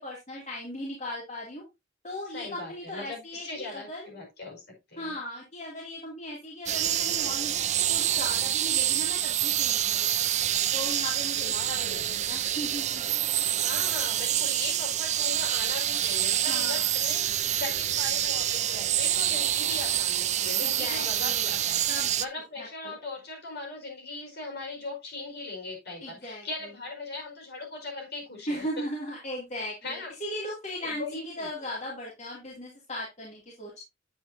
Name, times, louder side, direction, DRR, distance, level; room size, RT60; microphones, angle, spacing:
voice 1, 0.0-1.6 2.0-4.1 5.0-10.2 10.7-13.0 16.5-16.9 20.6-21.5 21.9-22.1 22.6-23.0 26.0-26.4 28.5-33.8, left 1 dB, 40° left, -3 dB, 2.4 m, -37 dB
voice 2, 2.3-4.6 4.9-5.1 11.4-12.2 13.6-21.8 22.2-28.6 29.6-30.1 30.8-31.7, left 3 dB, 60° left, 1 dB, 4.6 m, -39 dB
sound 1, 6.7-22.3, right 12 dB, 35° right, 0.4 m, -27 dB
8.8 x 8.6 x 2.6 m, 0.22 s
head